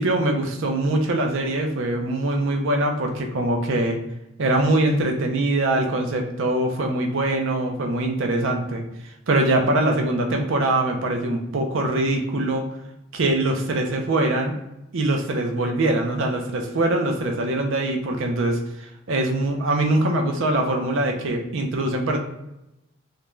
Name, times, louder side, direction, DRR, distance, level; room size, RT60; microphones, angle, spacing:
voice 1, 0.0-4.0 4.4-8.8 9.3-12.6 13.1-14.5 14.9-18.6 19.1-22.2, right 2 dB, 70° right, 3 dB, 0.5 m, -23 dB
2.4 x 2.2 x 3.0 m, 0.88 s
head